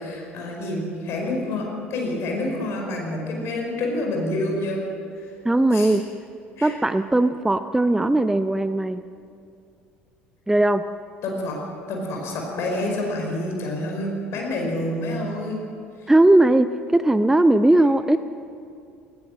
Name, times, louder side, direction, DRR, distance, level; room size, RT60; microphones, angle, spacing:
voice 1, 0.0-4.8 5.1-5.3 5.7-6.0 6.6-6.7 11.2-11.6 11.9-15.6 16.0-16.1 17.7-17.9, left 1 dB, 45° left, 1 dB, 5.1 m, -28 dB
voice 2, 5.4-6.0 6.6-9.0 10.5-10.9 16.1-18.2, right 1 dB, 5° right, 12 dB, 0.6 m, -18 dB
19.5 x 17.5 x 7.6 m, 2.5 s
figure-of-eight pair, 60°, 6 cm